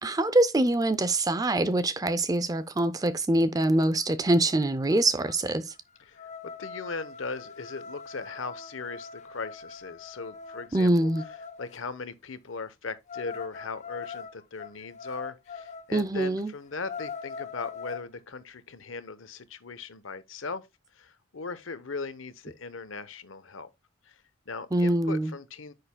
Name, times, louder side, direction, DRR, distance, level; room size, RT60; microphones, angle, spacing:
voice 1, 0.0-5.7 10.7-11.2 15.9-16.5 24.7-25.3, right 1 dB, 15° right, 0.5 m, -24 dB
sound 1, 3.8-3.9 4.2-4.5 4.9-11.8 13.1-15.9 16.3-16.4 16.7-18.1, left 6 dB, 35° left, 0.5 m, -42 dB
voice 2, 6.0-11.1 11.6-20.7 20.9-23.7 24.0-25.7, left 4 dB, 75° left, 0.9 m, -39 dB
9.9 x 6.6 x 2.2 m
head